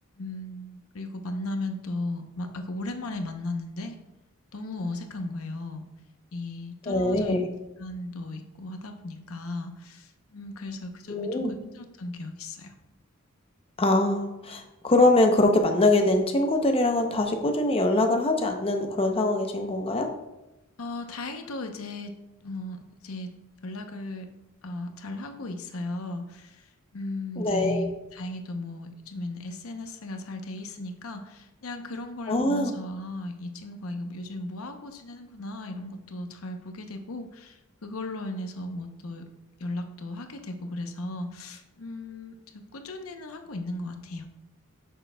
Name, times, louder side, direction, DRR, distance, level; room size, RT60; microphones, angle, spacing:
voice 1, 0.2-4.0 4.5-5.9 6.3-7.4 7.8-12.7 20.8-22.1 22.4-24.3 24.6-39.2 39.6-44.3, left 2 dB, 75° left, 6 dB, 0.8 m, -36 dB
voice 2, 6.9-7.5 11.1-11.5 13.8-20.1 27.4-27.9 32.3-32.7, left 2 dB, 25° left, 4 dB, 0.6 m, -23 dB
9.0 x 6.6 x 2.2 m, 0.98 s
head